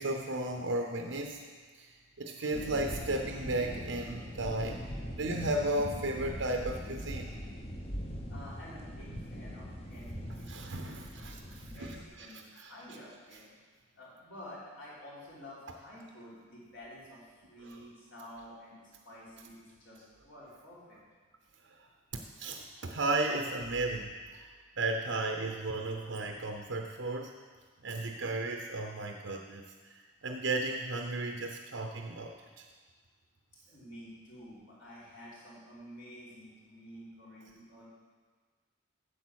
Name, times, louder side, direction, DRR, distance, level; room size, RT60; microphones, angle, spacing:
voice 1, 0.0-1.4 1.7-7.3 10.5-12.3 12.6-12.7 17.6-17.8 21.7-21.9 22.1-27.3 27.8-32.7, right 2 dB, 65° right, 4 dB, 0.7 m, -35 dB
sound 1, 2.5-12.0, equal, 30° left, 0.9 m, -41 dB
voice 2, 8.3-13.5 14.0-21.0 33.7-37.9, equal, 65° left, -7 dB, 3.7 m, -50 dB
8.6 x 7.8 x 6.3 m, 1.5 s
head